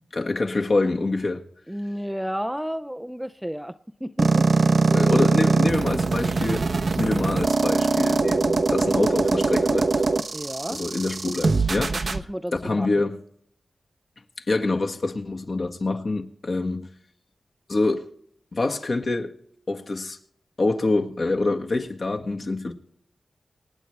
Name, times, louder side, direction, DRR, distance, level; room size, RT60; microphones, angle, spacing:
voice 1, 0.1-1.4 4.9-6.6 7.0-9.9 10.7-12.2 12.6-13.2 14.5-16.9 17.7-18.0 18.5-19.3 19.7-20.2 20.6-22.7, left 2 dB, 55° left, 1.8 m, -25 dB
voice 2, 1.7-5.5 10.3-10.8 11.9-13.1, equal, 5° right, 0.5 m, -33 dB
sound 1, 4.2-12.2, right 3 dB, 60° right, 0.9 m, -21 dB
26.5 x 9.3 x 3.4 m
wide cardioid pair, 75°, 0 cm